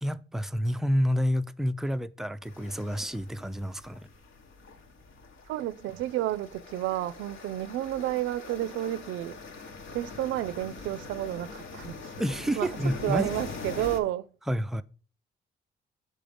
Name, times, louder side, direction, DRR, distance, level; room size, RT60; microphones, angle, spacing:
voice 1, 0.0-4.1 12.2-13.3 14.5-14.8, equal, ahead, 0.3 m, -29 dB
sound 1, 2.4-14.0, left 4 dB, 75° left, 1.2 m, -43 dB
voice 2, 5.5-9.4 9.9-12.1 12.6-12.7 13.0-14.3, right 14 dB, 80° right, 0.4 m, -31 dB
6.5 x 3.8 x 5.1 m
cardioid pair, 90°, 20 cm